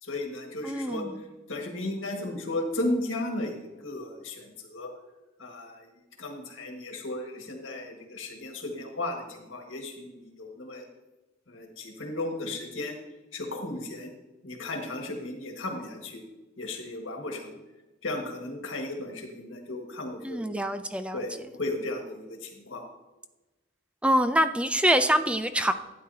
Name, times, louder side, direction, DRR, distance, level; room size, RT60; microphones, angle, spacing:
voice 1, 0.0-1.1 1.5-3.5 3.8-4.9 5.4-5.9 6.2-10.9 11.5-13.0 13.3-14.1 14.4-16.2 16.6-17.6 18.0-20.4 21.1-22.8, left 2 dB, 85° left, 2 dB, 1.7 m, -35 dB
voice 2, 0.6-1.2 20.2-21.2 24.0-25.7, right 1 dB, 5° right, 10 dB, 0.4 m, -25 dB
12.0 x 9.5 x 2.8 m, 1.1 s
head